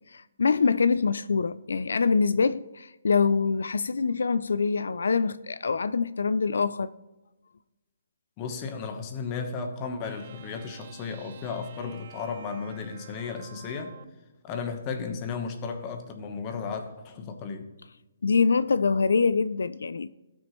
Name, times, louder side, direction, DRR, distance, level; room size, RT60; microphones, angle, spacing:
voice 1, 0.0-6.9 18.2-20.1, left 5 dB, 80° left, 0.3 m, -24 dB
voice 2, 8.4-13.9 14.4-17.7, left 5 dB, 20° left, 1.1 m, -34 dB
sound 1, 10.0-14.2, right 8 dB, 40° right, 0.6 m, -49 dB
17.5 x 6.2 x 3.1 m
hypercardioid pair, 170°, 0 cm